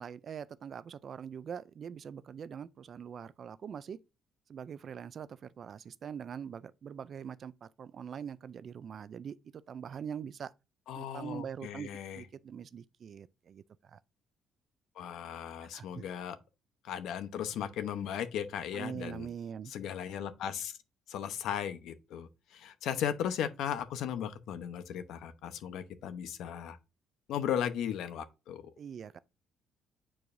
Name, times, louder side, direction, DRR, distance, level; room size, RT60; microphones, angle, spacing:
voice 1, 0.0-4.0 4.5-10.5 10.9-14.0 15.7-16.0 18.7-19.7 28.8-29.2, right 7 dB, 40° right, 0.3 m, -43 dB
voice 2, 10.9-12.2 15.0-16.4 16.8-19.3 19.7-20.8 21.1-26.8 27.3-28.6, left 9 dB, 70° left, 0.8 m, -36 dB
8.6 x 4.7 x 2.6 m
cardioid pair, 165°, 0 cm